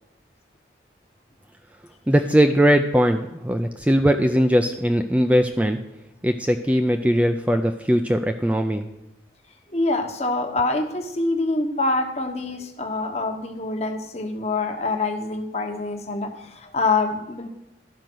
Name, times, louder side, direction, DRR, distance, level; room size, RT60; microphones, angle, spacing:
voice 1, 2.1-5.8 6.2-8.9, equal, 5° right, 6 dB, 0.3 m, -20 dB
voice 2, 9.7-17.5, left 3 dB, 35° left, 5 dB, 1.0 m, -25 dB
12.0 x 5.1 x 6.1 m, 0.90 s
head